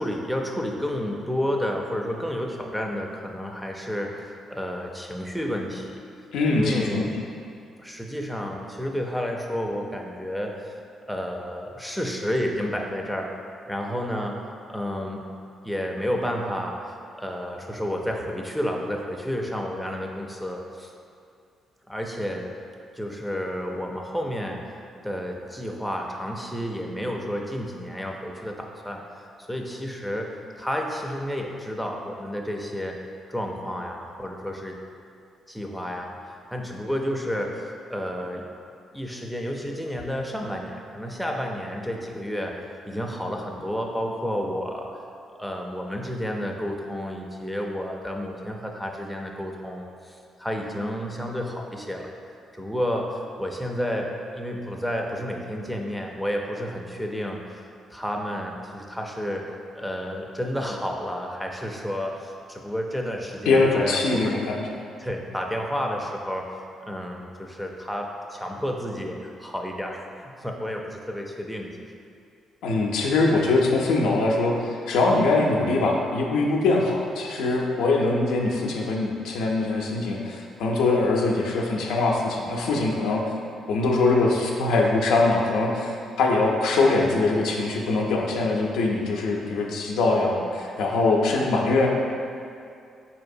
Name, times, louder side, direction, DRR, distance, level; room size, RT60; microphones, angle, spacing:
voice 1, 0.0-6.0 6.5-7.1 7.8-10.8 11.1-13.3 13.7-14.4 14.7-15.2 15.6-20.9 21.9-22.5 22.9-33.0 33.3-34.8 35.5-38.4 38.9-45.0 45.4-52.1 52.5-57.6 57.9-64.3 65.0-71.7, equal, ahead, 0 dB, 0.4 m, -31 dB
voice 2, 6.3-7.1 63.5-64.7 72.6-83.2 83.7-91.9, left 3 dB, 85° left, -1 dB, 0.4 m, -22 dB
4.0 x 2.8 x 2.6 m, 2.4 s
cardioid pair, 85°, 0 cm